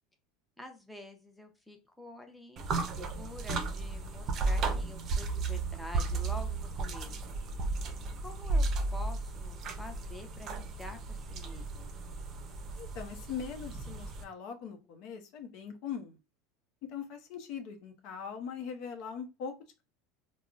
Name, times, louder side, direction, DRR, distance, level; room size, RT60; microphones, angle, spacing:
voice 1, 0.6-2.6 3.0-7.4 8.2-11.9, left 1 dB, 5° left, 4 dB, 0.6 m, -48 dB
sound 1, 2.6-14.2, right 3 dB, 40° right, 0.5 m, -34 dB
voice 2, 12.7-16.2 16.8-19.6, left 7 dB, 60° left, 5 dB, 0.6 m, -41 dB
3.6 x 2.0 x 2.4 m, 0.29 s
supercardioid pair, 105°, 0 cm